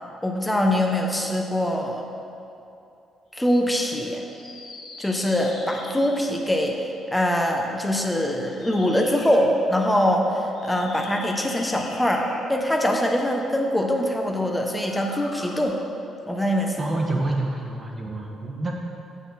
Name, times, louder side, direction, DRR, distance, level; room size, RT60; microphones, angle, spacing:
voice 1, 0.2-2.0 3.3-4.2 5.0-6.7 7.1-15.8 16.3-17.0, left 1 dB, 5° left, 1 dB, 0.8 m, -23 dB
sound 1, 4.3-6.4 8.4-9.5 10.5-12.7 14.7-15.6, left 2 dB, 75° left, 1.7 m, -42 dB
voice 2, 16.8-18.7, right 2 dB, 30° right, 0 dB, 1.2 m, -27 dB
8.2 x 8.0 x 4.1 m, 2.7 s
cardioid pair, 125°, 0 cm